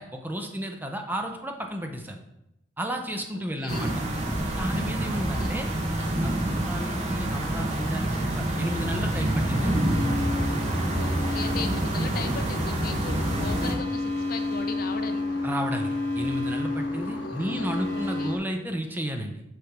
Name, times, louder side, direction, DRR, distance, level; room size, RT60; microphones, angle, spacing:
voice 1, 0.0-2.2 2.8-4.0 4.6-5.7 6.2-9.8 15.4-19.4, equal, 10° right, 4 dB, 0.6 m, -32 dB
voice 2, 3.3-3.9 5.1-5.5 10.8-15.4 17.3-18.3, left 4 dB, 50° left, 8 dB, 0.5 m, -38 dB
sound 1, 3.7-13.7, right 1 dB, 40° right, 1.2 m, -27 dB
sound 2, 9.5-18.4, left 2 dB, 75° left, 0.9 m, -31 dB
6.5 x 3.3 x 5.9 m, 0.85 s
head